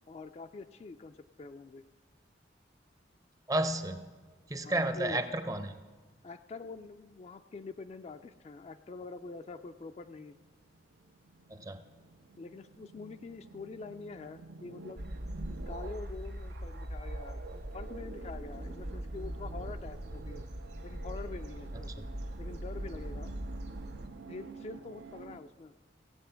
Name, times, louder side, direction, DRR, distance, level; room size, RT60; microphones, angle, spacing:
voice 1, 0.1-1.8 4.6-5.2 6.2-10.3 12.4-15.0 15.5-20.4 20.8-22.0 22.4-23.3 24.3-25.7, left 4 dB, 35° left, 9 dB, 0.3 m, -45 dB
voice 2, 3.5-4.0 4.5-5.8 11.5-11.8 22.0-22.1, right 1 dB, 20° right, 10 dB, 0.5 m, -32 dB
sound 1, 9.6-25.4, right 4 dB, 85° right, 0.5 m, -50 dB
sound 2, 15.0-24.1, equal, 65° right, 1.5 m, -41 dB
16.0 x 7.6 x 5.7 m, 1.4 s
head